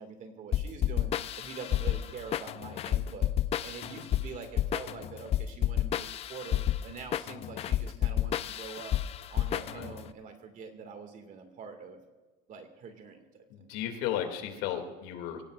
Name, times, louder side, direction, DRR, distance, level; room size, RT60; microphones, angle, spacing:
voice 1, 0.0-3.3 3.6-9.0 9.3-12.0 12.5-13.7, right 5 dB, 40° right, 6 dB, 2.2 m, -45 dB
sound 1, 0.5-10.1, left 12 dB, 30° left, 0.4 m, -31 dB
voice 2, 9.5-9.9 13.5-15.4, left 10 dB, 85° left, 5 dB, 2.6 m, -35 dB
25.5 x 16.5 x 2.5 m, 1.3 s
cardioid pair, 150°, 20 cm